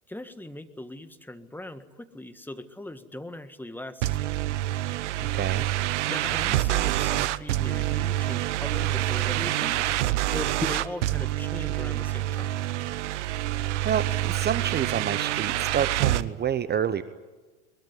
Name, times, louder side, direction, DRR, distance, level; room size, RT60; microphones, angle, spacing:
voice 1, 0.1-4.4 6.1-9.9 10.3-12.6, left 1 dB, 5° left, 9 dB, 1.7 m, -39 dB
sound 1, 4.0-16.2, right 14 dB, 70° right, 1.0 m, -27 dB
voice 2, 5.2-5.6 13.8-17.0, right 8 dB, 25° right, 13 dB, 1.0 m, -28 dB
sound 2, 8.4-15.8, right 9 dB, 45° right, 3.4 m, -50 dB
22.0 x 21.5 x 9.9 m, 1.2 s
hypercardioid pair, 85°, 37 cm